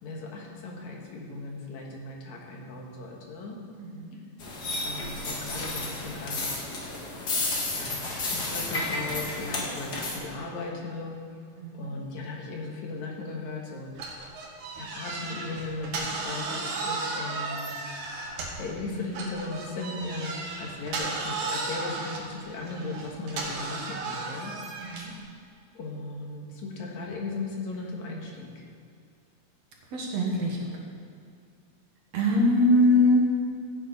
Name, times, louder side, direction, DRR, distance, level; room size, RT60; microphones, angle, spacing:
voice 1, 0.0-3.6 4.8-6.6 7.7-11.2 11.7-13.9 14.7-17.8 18.6-24.5 25.7-28.6, left 3 dB, 70° left, 0 dB, 2.7 m, -37 dB
voice 2, 3.8-4.1 11.6-11.9 24.8-25.1 29.9-30.7 32.1-33.3, left 1 dB, 60° right, -1 dB, 2.5 m, -23 dB
sound 1, 4.4-10.2, left 2 dB, 40° left, 1.9 m, -32 dB
sound 2, 14.0-18.7 19.1-25.2, right 3 dB, 80° right, 2.9 m, -35 dB
15.0 x 9.2 x 4.1 m, 2.4 s
omnidirectional pair, 3.4 m